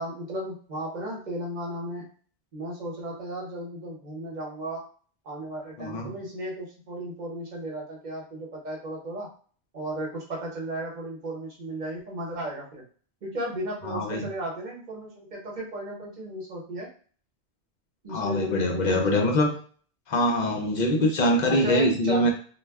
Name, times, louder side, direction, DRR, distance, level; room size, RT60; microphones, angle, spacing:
voice 1, 0.0-2.1 2.5-4.8 5.2-9.3 9.7-12.8 13.2-16.9 18.0-19.5 21.5-22.3, right 1 dB, 45° right, -2 dB, 0.9 m, -35 dB
voice 2, 5.8-6.1 13.8-14.3 18.1-19.5 20.1-22.3, left 1 dB, 50° left, 2 dB, 0.6 m, -23 dB
2.2 x 2.1 x 3.4 m, 0.43 s
omnidirectional pair, 1.1 m